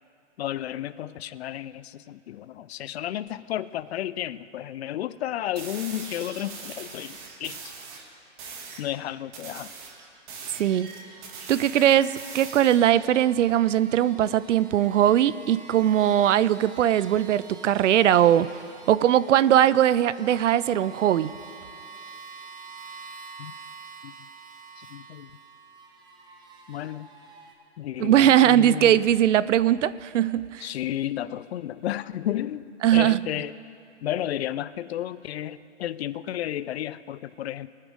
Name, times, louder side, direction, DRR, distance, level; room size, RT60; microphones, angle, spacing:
voice 1, 0.4-7.6 8.8-9.7 23.4-23.5 24.0-24.1 24.8-25.3 26.7-27.1 27.8-29.0 30.6-32.6 32.9-33.5 34.0-37.7, left 12 dB, 55° left, 17 dB, 0.5 m, -32 dB
sound 1, 5.6-8.0 8.4-8.9 9.3-13.0, right 4 dB, 40° right, 2.2 m, -41 dB
sound 2, 10.9-27.5, right 4 dB, 10° right, 0.7 m, -47 dB
voice 2, 11.5-18.5 18.9-21.3 28.0-30.6 32.8-33.2, right 11 dB, 70° right, 18 dB, 0.6 m, -20 dB
22.5 x 9.7 x 3.6 m, 2.5 s
hypercardioid pair, 145°, 38 cm